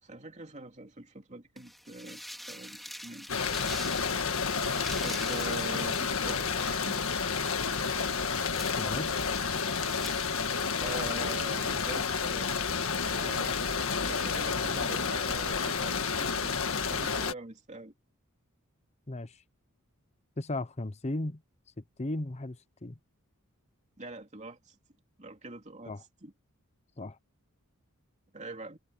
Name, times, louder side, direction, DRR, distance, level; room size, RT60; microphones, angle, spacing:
voice 1, 0.0-2.2 2.5-3.3 5.0-7.6 10.8-12.5 13.0-13.5 14.0-17.9 24.0-24.8 25.2-26.3 28.3-28.8, right 2 dB, 30° right, 2.9 m, -44 dB
sound 1, 1.6-11.0, equal, ahead, 3.0 m, -46 dB
sound 2, 3.3-17.3, left 5 dB, 65° left, 1.8 m, -30 dB
voice 2, 8.8-9.1 19.1-19.4 20.4-21.4 22.0-23.0 25.9-26.0 27.0-27.2, left 2 dB, 30° left, 0.8 m, -35 dB
head